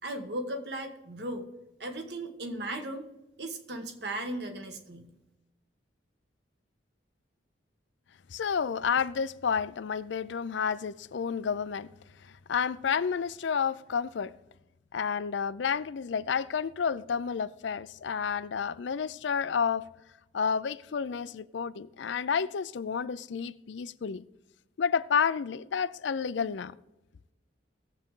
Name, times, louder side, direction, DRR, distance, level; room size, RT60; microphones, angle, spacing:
voice 1, 0.0-1.4 1.8-3.1 3.4-5.1, right 1 dB, 60° right, 1.4 m, -36 dB
voice 2, 8.3-11.9 12.2-14.3 14.9-19.9 20.3-24.2 24.8-26.7, left 6 dB, 75° left, 0.4 m, -30 dB
19.0 x 7.5 x 3.7 m
head